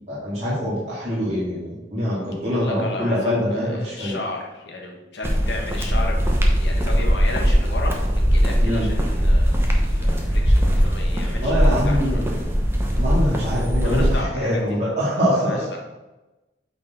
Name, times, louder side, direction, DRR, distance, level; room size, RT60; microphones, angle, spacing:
voice 1, 0.1-4.2 8.6-8.9 11.4-12.4 13.0-15.6, equal, 40° right, -9 dB, 2.2 m, -24 dB
voice 2, 2.4-12.2 13.2-13.4 13.7-14.8 15.1-15.8, left 2 dB, 80° left, 0 dB, 1.6 m, -34 dB
sound 1, 5.2-14.2, equal, 15° right, 0.9 m, -20 dB
8.5 x 4.3 x 4.2 m, 1.1 s
head